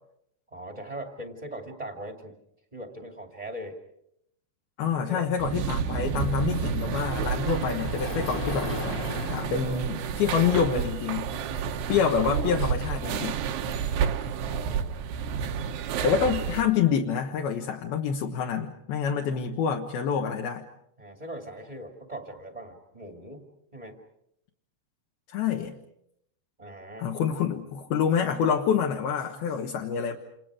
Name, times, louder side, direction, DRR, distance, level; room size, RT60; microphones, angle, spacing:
voice 1, 0.5-2.3 2.7-3.8 5.0-5.3 11.5-12.0 14.3-14.9 16.2-16.3 21.0-23.4 23.7-24.0 26.6-27.1, right 1 dB, 15° right, 3 dB, 1.5 m, -40 dB
voice 2, 4.8-8.7 9.3-11.3 11.9-13.4 16.0-20.6 25.3-25.7 27.0-30.2, left 7 dB, 70° left, 1 dB, 3.1 m, -27 dB
sound 1, 5.4-16.6, right 7 dB, 75° right, 3.2 m, -30 dB
Sliding door, 5.9-10.8, left 3 dB, 30° left, 1.8 m, -38 dB
29.5 x 28.5 x 5.0 m, 0.76 s
omnidirectional pair, 4.9 m